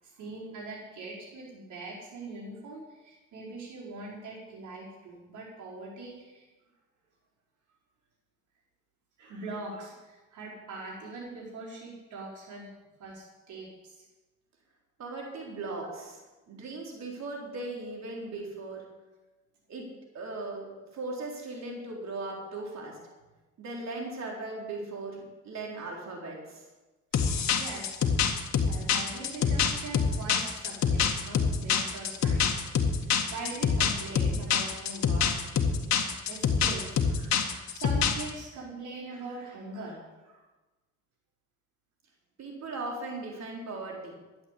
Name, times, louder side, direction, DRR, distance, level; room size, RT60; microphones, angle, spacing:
voice 1, 0.0-6.5 9.2-12.7 13.0-14.1 15.8-15.9 27.1-28.0 28.5-32.5 32.8-35.3 36.2-40.4, right 2 dB, 80° right, -7 dB, 5.2 m, -42 dB
voice 2, 15.0-16.2 16.5-18.8 19.7-19.9 20.1-23.0 23.6-26.7 33.2-33.3 42.4-44.1, right 2 dB, 60° right, -1 dB, 4.1 m, -38 dB
sound 1, 27.1-38.3, left 6 dB, 65° left, 1.9 m, -26 dB
12.5 x 10.5 x 8.5 m, 1.2 s
cardioid pair, 90°, 30 cm